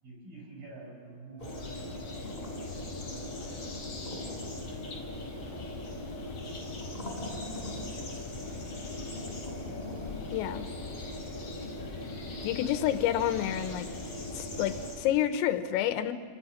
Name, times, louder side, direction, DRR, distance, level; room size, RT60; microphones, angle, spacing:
voice 1, 0.0-1.9 2.4-3.9 4.5-5.1 5.4-6.7 7.2-9.8, right 2 dB, 45° right, -1 dB, 8.0 m, -51 dB
sound 1, 1.4-15.0, left 3 dB, 30° left, 5.4 m, -43 dB
sound 2, 1.4-14.9, left 1 dB, 10° left, 3.8 m, -41 dB
voice 2, 10.3-10.7 12.4-13.9 14.3-16.1, left 11 dB, 80° left, 9 dB, 3.6 m, -29 dB
29.0 x 26.0 x 6.1 m, 2.2 s
omnidirectional pair, 5.9 m